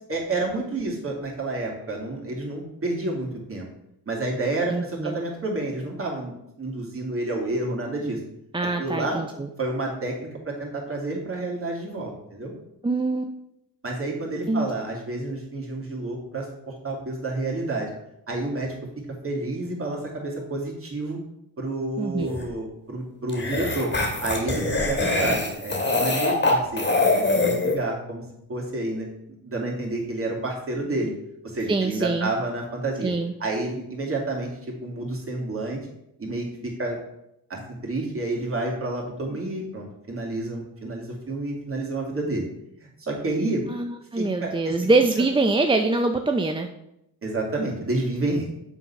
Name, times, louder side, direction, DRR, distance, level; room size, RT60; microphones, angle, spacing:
voice 1, 0.1-3.6 4.1-8.2 8.8-9.2 9.6-10.1 10.4-12.5 13.8-17.9 18.3-18.7 19.2-21.2 21.6-23.9 24.2-26.9 27.1-29.1 29.4-31.1 31.4-33.1 33.4-35.8 36.2-36.5 36.8-37.0 37.5-42.4 42.8-43.6 44.1-44.7 47.2-48.5, right 2 dB, 35° right, -2 dB, 2.9 m, -29 dB
voice 2, 4.7-5.2 8.5-9.5 12.8-13.3 14.5-14.7 22.0-22.3 31.7-32.3 33.0-33.3 43.7-46.7, right 3 dB, 15° right, 5 dB, 0.5 m, -24 dB
sound 1, 22.2-22.4 23.3-27.7, left 2 dB, 25° left, 2.5 m, -23 dB
7.0 x 4.2 x 5.8 m, 0.81 s
supercardioid pair, 65°, 41 cm